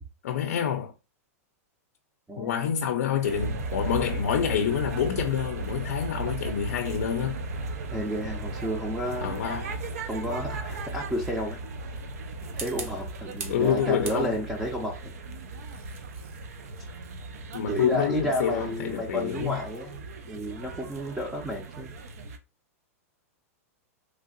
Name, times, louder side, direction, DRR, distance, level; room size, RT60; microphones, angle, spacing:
voice 1, 0.2-0.9 2.4-7.4 9.2-9.7 13.5-14.4 17.5-19.6, left 8 dB, 85° left, 0.4 m, -27 dB
sound 1, 3.2-22.4, right 2 dB, 80° right, 0.5 m, -36 dB
voice 2, 7.9-9.3 10.1-11.6 12.5-14.9 17.7-21.9, equal, 5° right, 0.4 m, -31 dB
sound 2, 12.4-13.7 14.0-14.7 15.4-20.1, right 4 dB, 55° right, 0.8 m, -44 dB
3.2 x 2.7 x 2.4 m
supercardioid pair, 160°, 8 cm